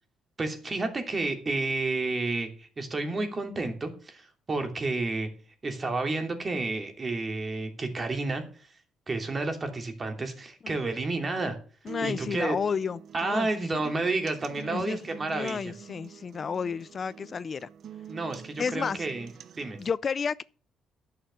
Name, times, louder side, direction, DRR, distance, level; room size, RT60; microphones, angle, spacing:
voice 1, 0.4-5.3 5.6-8.8 9.1-11.6 12.0-12.6 13.1-15.7 17.2-17.3 18.1-19.3 19.6-19.8, right 3 dB, 35° right, 2.9 m, -31 dB
voice 2, 11.9-13.5 14.7-15.0 15.3-17.7 18.6-19.0 19.8-20.4, left 6 dB, 45° left, 0.4 m, -31 dB
sound 1, 11.9-19.9, right 8 dB, 65° right, 0.7 m, -46 dB
11.0 x 6.7 x 6.9 m
cardioid pair, 90°, 0 cm